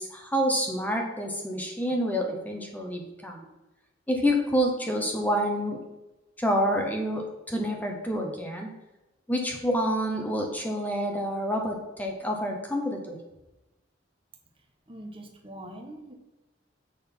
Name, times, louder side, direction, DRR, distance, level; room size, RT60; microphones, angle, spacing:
voice 1, 0.0-3.4 4.1-5.8 6.4-8.7 9.3-13.2, equal, 10° left, 1 dB, 1.1 m, -28 dB
voice 2, 14.9-16.1, right 1 dB, 30° right, 2 dB, 1.1 m, -43 dB
7.0 x 6.4 x 5.4 m, 0.99 s
head